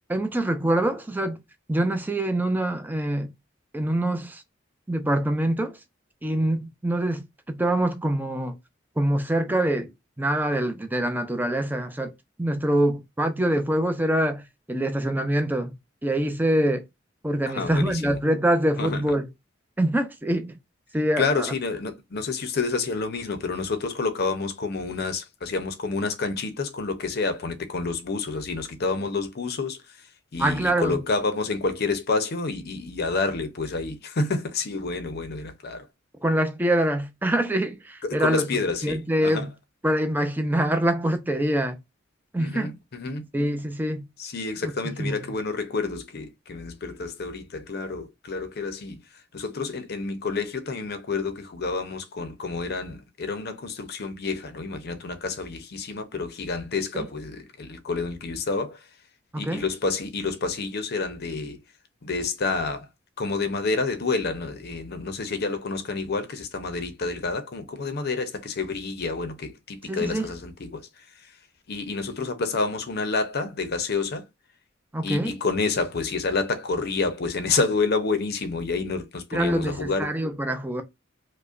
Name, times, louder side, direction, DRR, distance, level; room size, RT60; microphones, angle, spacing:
voice 1, 0.1-1.4 1.7-3.3 3.7-4.4 4.9-5.8 6.2-8.6 9.0-9.9 10.2-12.1 12.4-15.7 16.0-16.8 17.2-19.3 19.8-20.6 20.9-21.5 30.4-31.0 36.2-38.5 38.8-39.5 39.8-41.8 42.3-42.7 43.3-44.0 44.6-45.3 56.9-57.1 59.3-59.6 69.9-70.3 74.9-75.3 79.3-80.8, right 1 dB, 10° right, 0.5 m, -25 dB
voice 2, 17.5-18.2 18.8-19.0 21.2-29.8 30.3-35.9 38.0-39.5 42.4-43.3 44.2-49.0 49.3-58.8 59.4-61.6 62.0-62.9 63.2-70.9 71.7-74.2 75.0-80.2, left 4 dB, 55° left, 0.6 m, -29 dB
4.9 x 2.1 x 2.4 m
head